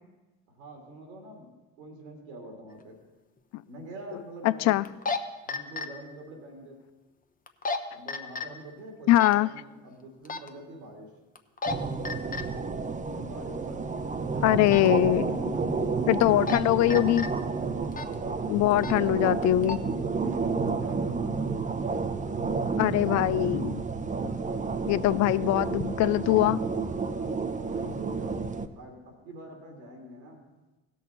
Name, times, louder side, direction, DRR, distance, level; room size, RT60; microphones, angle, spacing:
voice 1, 0.5-1.5 1.8-2.9 3.7-4.9 5.5-6.8 7.9-11.1 12.3-12.6 13.1-14.5 15.0-16.8 17.3-19.8 20.5-21.5 24.2-25.1 27.1-30.4, right 1 dB, 90° right, 2.7 m, -46 dB
sound 1, 2.8-2.9 4.9-5.2 5.5-5.9 7.5-7.8 8.1-8.5 9.2-9.3 10.3-10.5 11.4-11.7 12.1-12.4 14.7-14.9 16.2-16.6 16.9-17.3 17.9-18.1 18.8-19.0 19.4-19.8, left 4 dB, 25° left, 1.0 m, -31 dB
voice 2, 4.4-4.8 9.1-9.5 14.4-15.3 16.1-17.3 18.5-19.8 22.8-23.8 24.9-26.6, left 15 dB, 55° left, 0.4 m, -22 dB
sound 2, 11.7-28.7, right 4 dB, 25° right, 0.8 m, -30 dB
17.0 x 6.4 x 4.2 m
hypercardioid pair, 65°, 32 cm